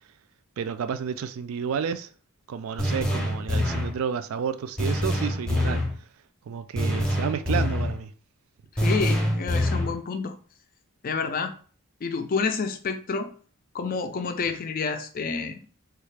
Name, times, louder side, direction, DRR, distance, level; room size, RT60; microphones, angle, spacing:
voice 1, 0.6-2.1 2.5-5.8 6.5-8.1, right 7 dB, 65° right, 0.3 m, -31 dB
sound 1, 2.8-4.0 4.8-5.9 6.8-8.0 8.8-10.0, left 1 dB, 5° left, 0.7 m, -25 dB
voice 2, 8.8-10.4 11.0-11.5 12.0-13.3 13.7-15.6, left 5 dB, 40° left, 0.4 m, -29 dB
3.7 x 2.4 x 3.2 m
head